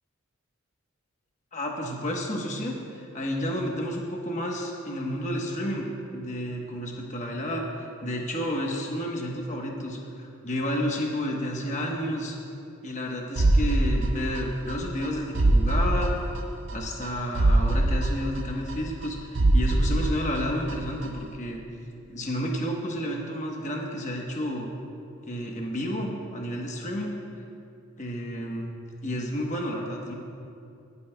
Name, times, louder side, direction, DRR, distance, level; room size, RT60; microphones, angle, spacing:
voice 1, 1.5-12.4 12.8-16.1 16.7-21.6 22.1-24.7 25.2-27.2 28.0-28.7 29.0-30.1, equal, 35° left, 0 dB, 1.1 m, -31 dB
sound 1, 13.4-14.7 15.0-15.1 15.4-16.7 17.0-17.1 17.4-19.1 19.4-20.7 21.0-21.1, right 2 dB, 55° right, 0.6 m, -23 dB
21.0 x 8.3 x 2.3 m, 2.5 s
head